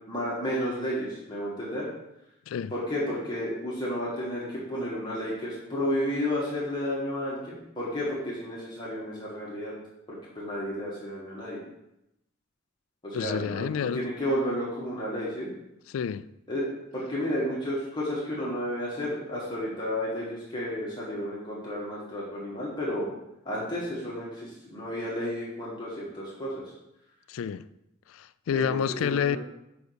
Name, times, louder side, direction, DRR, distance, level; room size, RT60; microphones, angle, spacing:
voice 1, 0.1-1.9 2.7-9.7 10.1-11.6 13.0-15.5 16.5-16.7 16.9-23.1 23.4-26.6 28.5-29.4, equal, 20° left, 1.7 m, -32 dB
voice 2, 13.1-14.0 15.9-16.3 27.3-27.7 28.1-29.4, left 7 dB, 90° left, 0.3 m, -29 dB
5.2 x 5.1 x 6.4 m
head